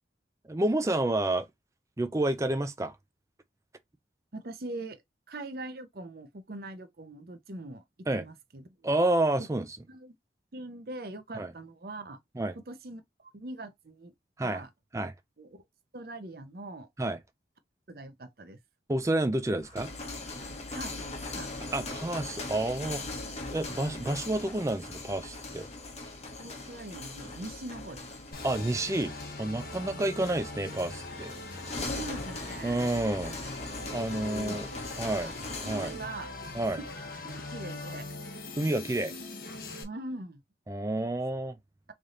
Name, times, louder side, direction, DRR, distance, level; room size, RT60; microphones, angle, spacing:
voice 1, 0.5-1.5 2.0-3.0 8.1-8.2 8.8-9.7 11.3-11.5 12.4-12.6 14.4-14.6 14.9-15.1 17.0-17.2 18.9-19.9 21.7-23.0 23.5-25.7 28.4-31.4 32.6-33.3 33.9-34.7 35.0-35.3 35.6-35.9 36.5-36.8 38.6-39.1 40.7-41.6, right 1 dB, 15° right, 0.4 m, -29 dB
voice 2, 4.3-7.8 8.1-8.9 9.4-10.2 10.5-12.2 12.5-14.1 14.4-14.7 15.4-15.6 15.9-16.9 17.9-18.6 20.7-21.7 26.4-28.1 29.9-30.1 31.9-32.8 34.3-34.7 35.0-35.4 35.6-36.3 36.8-36.9 37.2-38.1 39.8-40.4, right 2 dB, 55° right, 0.7 m, -42 dB
sound 1, 19.6-36.0, left 2 dB, 35° left, 1.0 m, -40 dB
sound 2, 28.3-39.8, left 2 dB, 50° left, 0.9 m, -41 dB
sound 3, 30.9-36.0, left 4 dB, 75° left, 1.1 m, -53 dB
3.3 x 2.7 x 3.7 m
head